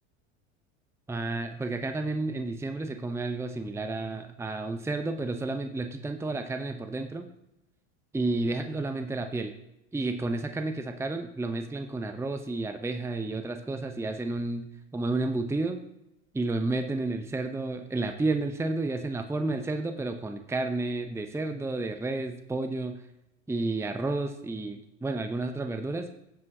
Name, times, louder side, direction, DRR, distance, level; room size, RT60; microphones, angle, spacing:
voice 1, 1.1-7.3 8.1-9.5 9.9-14.7 14.9-15.8 16.3-23.0 23.5-26.1, right 2 dB, 5° right, 7 dB, 0.8 m, -31 dB
16.0 x 7.5 x 2.8 m, 0.86 s
hypercardioid pair, 80°, 39 cm